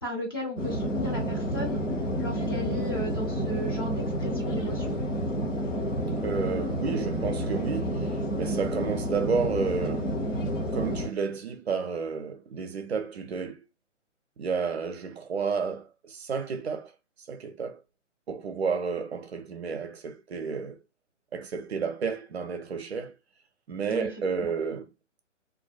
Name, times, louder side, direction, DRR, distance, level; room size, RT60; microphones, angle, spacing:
voice 1, 0.0-1.8 2.2-4.9 23.9-24.1 24.4-24.5, equal, 20° left, 0.5 m, -35 dB
sound 1, 0.6-11.1, equal, 75° left, 1.0 m, -30 dB
voice 2, 6.2-10.1 10.7-13.6 14.4-16.9 17.3-17.8 18.3-20.8 21.3-23.1 23.7-24.9, right 5 dB, 55° right, 0.5 m, -31 dB
2.5 x 2.1 x 2.3 m
figure-of-eight pair, 140°, 38 cm